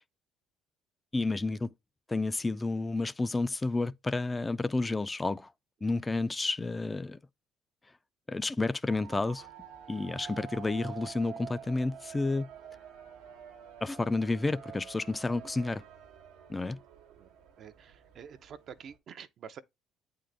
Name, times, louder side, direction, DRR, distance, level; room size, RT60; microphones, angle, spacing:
voice 1, 1.1-1.7 2.1-5.5 5.8-7.2 8.3-9.5 9.9-12.5 13.8-15.8 16.5-16.8, left 3 dB, 15° left, 0.4 m, -30 dB
sound 1, 8.9-19.0, right 8 dB, 90° right, 1.1 m, -48 dB
voice 2, 17.6-19.6, right 7 dB, 50° right, 0.6 m, -48 dB
8.5 x 3.8 x 3.3 m
cardioid pair, 100°, 0 cm